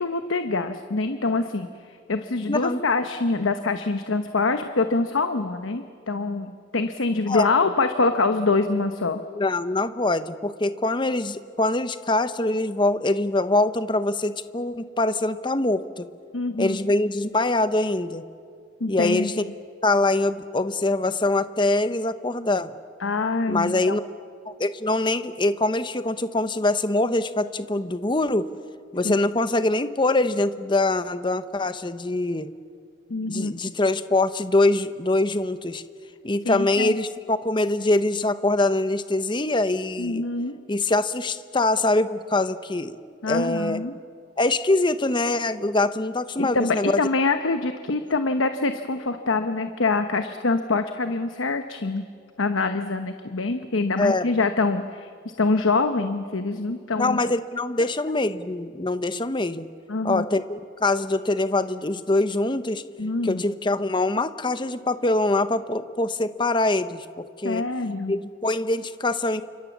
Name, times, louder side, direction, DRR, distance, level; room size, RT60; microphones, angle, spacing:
voice 1, 0.0-9.2 16.3-16.8 18.8-19.3 23.0-24.0 29.0-29.2 33.1-33.5 36.4-37.0 40.0-40.6 43.2-43.9 46.4-52.0 52.4-55.1 55.4-57.2 59.9-60.2 63.0-63.4 67.4-68.2, left 3 dB, 85° left, 8 dB, 1.0 m, -25 dB
voice 2, 2.5-2.8 7.3-7.5 9.3-16.1 16.6-18.2 18.9-19.4 19.8-22.7 23.5-24.0 24.5-28.5 28.9-32.5 33.3-35.8 36.2-40.2 40.7-42.9 43.3-43.8 44.4-47.0 54.0-54.3 57.0-59.7 60.0-62.8 63.2-67.6 68.1-69.4, left 2 dB, 25° left, 12 dB, 0.8 m, -24 dB
29.0 x 25.5 x 7.2 m, 2.3 s
head